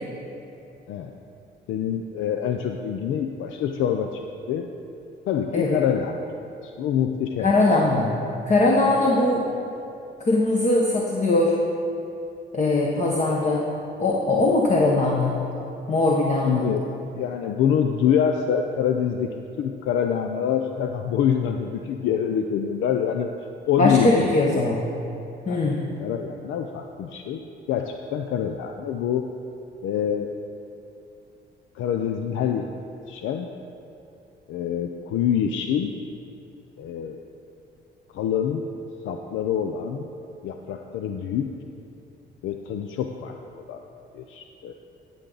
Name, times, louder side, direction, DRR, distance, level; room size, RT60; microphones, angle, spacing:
voice 1, 1.7-4.7 5.3-6.2 6.6-7.5 16.4-16.9 17.1-23.3 23.7-24.6 25.5-27.4 27.7-29.2 29.8-30.3 31.7-32.7 33.1-33.5 34.5-35.9 36.8-37.2 38.1-38.6 39.0-40.1 40.4-41.5 42.4-43.3 43.7-43.8 44.1-44.7, left 8 dB, 80° left, 5 dB, 0.5 m, -26 dB
voice 2, 7.4-8.1 8.5-9.5 10.2-11.6 12.5-13.6 14.0-15.4 15.9-16.7 23.8-24.8 25.5-25.8, left 2 dB, 35° left, -2 dB, 1.1 m, -21 dB
14.5 x 6.9 x 3.9 m, 2.7 s
cardioid pair, 90°, 20 cm